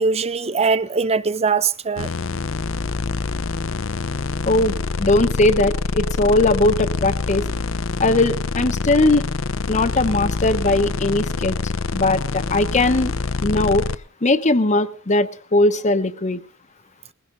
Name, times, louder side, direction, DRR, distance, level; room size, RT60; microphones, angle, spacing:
voice 1, 0.0-2.1, right 4 dB, 30° right, 0.7 m, -21 dB
sound 1, 2.0-14.0, left 4 dB, 70° left, 0.7 m, -25 dB
voice 2, 4.5-7.5 8.0-9.3 9.7-13.1 13.4-13.9 14.2-16.4, left 2 dB, 35° left, 0.9 m, -19 dB
20.0 x 16.5 x 3.8 m
head